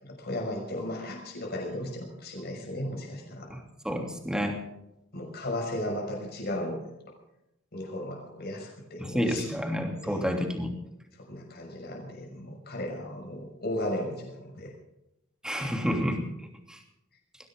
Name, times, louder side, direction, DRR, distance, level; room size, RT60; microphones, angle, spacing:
voice 1, 0.0-3.5 5.1-7.2 7.7-9.6 10.0-10.4 11.3-14.7, left 1 dB, 55° left, 1 dB, 5.8 m, -35 dB
voice 2, 3.5-4.6 9.0-10.7 15.4-16.8, equal, 5° right, 3 dB, 2.9 m, -30 dB
21.0 x 17.0 x 3.8 m, 0.85 s
head